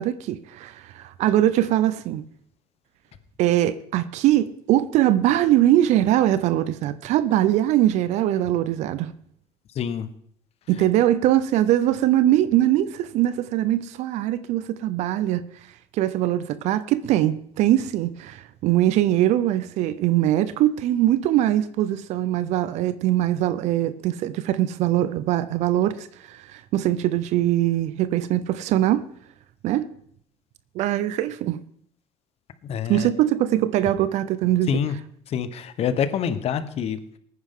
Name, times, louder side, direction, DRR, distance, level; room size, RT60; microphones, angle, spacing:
voice 1, 0.0-2.2 3.4-9.1 10.7-15.5 15.9-29.0 29.6-29.9 30.7-31.6 32.9-34.7, right 13 dB, 75° right, 0.6 m, -22 dB
voice 2, 9.7-10.1 32.6-33.1 34.7-35.0 35.3-37.2, left 8 dB, 60° left, 1.1 m, -26 dB
19.0 x 9.6 x 3.7 m
cardioid pair, 90°, 12 cm